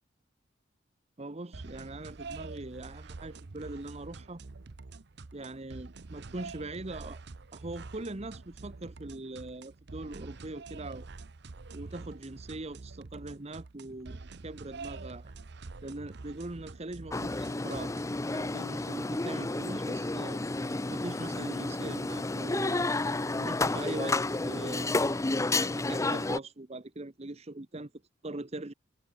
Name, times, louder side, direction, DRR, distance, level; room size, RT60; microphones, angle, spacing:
voice 1, 1.2-4.4 5.3-7.2 7.5-11.1 11.7-15.3 15.8-17.9 18.3-20.4 20.9-22.9 23.4-25.0 25.5-27.9 28.2-28.7, right 2 dB, 35° right, 1.0 m, -41 dB
sound 1, 1.5-18.2, right 3 dB, 60° right, 0.8 m, -46 dB
sound 2, 17.1-26.4, left 2 dB, 15° left, 0.5 m, -31 dB
head